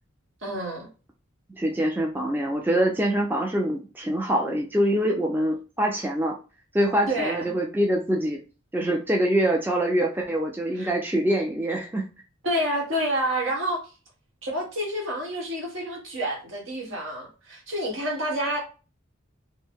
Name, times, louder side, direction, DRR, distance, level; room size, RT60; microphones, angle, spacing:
voice 1, 0.4-0.9 7.1-7.5 10.8-10.9 12.4-13.8 14.4-18.6, equal, 65° right, 1.1 m, -28 dB
voice 2, 1.5-6.3 6.7-8.4 8.7-12.0, right 1 dB, 10° right, 0.4 m, -24 dB
2.6 x 2.1 x 3.5 m
head